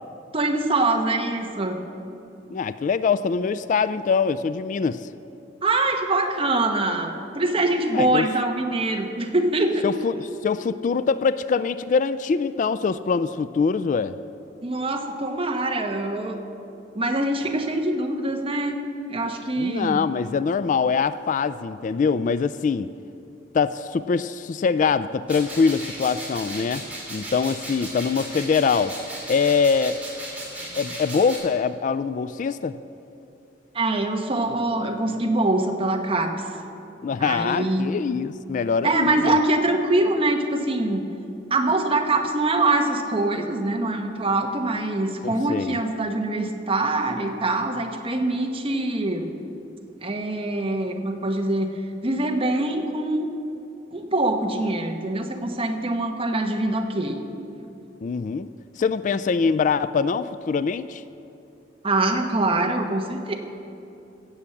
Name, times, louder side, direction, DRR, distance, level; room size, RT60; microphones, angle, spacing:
voice 1, 0.3-1.8 5.6-9.8 14.6-16.4 16.9-18.8 19.1-20.0 33.7-36.5 37.2-37.9 38.8-41.1 41.5-49.3 50.0-51.7 52.0-53.3 53.9-57.2 61.8-63.4, right 2 dB, 30° right, 3 dB, 1.1 m, -24 dB
voice 2, 2.5-5.1 7.9-8.3 9.8-14.2 19.6-22.9 23.5-26.8 27.1-28.9 29.3-30.0 30.8-32.8 37.0-39.4 45.2-45.7 58.0-58.5 58.8-61.0, left 5 dB, 45° left, 14 dB, 0.3 m, -23 dB
sound 1, 25.3-31.4, right 1 dB, 10° right, 3.4 m, -36 dB
16.5 x 7.2 x 7.7 m, 2.8 s
head